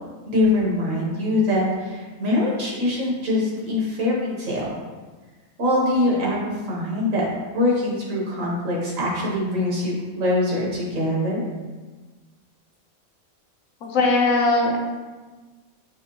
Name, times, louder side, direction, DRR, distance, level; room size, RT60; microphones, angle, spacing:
voice 1, 0.2-4.7 5.6-7.3 7.5-11.4, left 1 dB, 70° right, -4 dB, 1.5 m, -23 dB
voice 2, 13.8-14.8, left 3 dB, 70° left, 0 dB, 1.1 m, -19 dB
5.6 x 2.5 x 3.0 m, 1.3 s
omnidirectional pair, 1.4 m